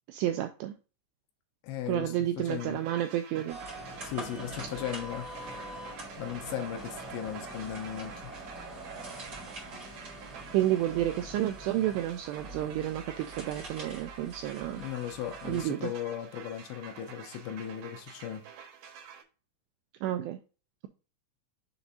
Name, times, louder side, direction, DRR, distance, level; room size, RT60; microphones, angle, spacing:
voice 1, 0.1-0.7 1.9-3.6 10.5-14.8 15.5-15.9 20.0-20.4, right 13 dB, 85° right, 2.4 m, -30 dB
voice 2, 1.6-2.8 4.0-5.3 6.2-8.3 14.7-18.4, left 10 dB, 80° left, 2.7 m, -37 dB
sound 1, 2.5-19.2, right 7 dB, 70° right, 2.5 m, -49 dB
sound 2, 3.5-15.7, right 2 dB, 55° right, 1.1 m, -44 dB
sound 3, 3.7-12.0, left 2 dB, 60° left, 0.9 m, -54 dB
7.0 x 2.5 x 5.3 m
omnidirectional pair, 5.3 m